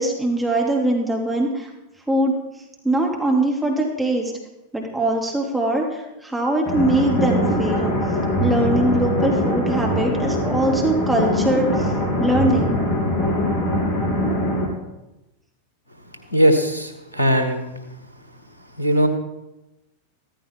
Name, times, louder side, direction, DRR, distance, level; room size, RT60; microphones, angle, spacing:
voice 1, 0.0-1.7 2.1-2.3 2.8-4.3 4.7-7.9 8.4-11.9 12.2-12.8, right 1 dB, 5° right, -1 dB, 2.8 m, -22 dB
sound 1, 6.7-14.7, left 1 dB, 25° left, 3.5 m, -22 dB
voice 2, 16.3-17.6 18.8-19.1, equal, 80° left, 6 dB, 1.7 m, -19 dB
14.5 x 14.5 x 3.7 m, 0.96 s
figure-of-eight pair, 90°, 0 cm